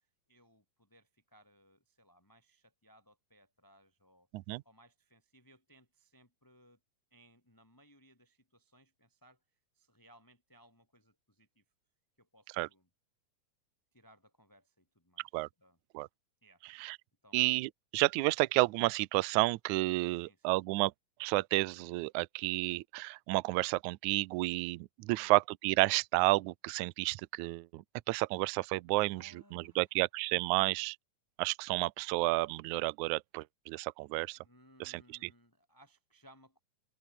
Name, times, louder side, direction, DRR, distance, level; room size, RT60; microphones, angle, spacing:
voice 1, 0.3-4.3 4.6-6.8 7.1-9.4 9.7-11.6 12.2-12.9 13.9-15.8 16.4-16.6 17.2-17.4 20.1-20.6 25.1-25.3 29.1-29.9 34.4-36.6, equal, 5° left, 3.6 m, -64 dB
voice 2, 17.3-20.9 21.2-31.0 31.4-34.4 34.8-35.3, right 22 dB, 85° right, 1.7 m, -31 dB
open air
omnidirectional pair, 4.1 m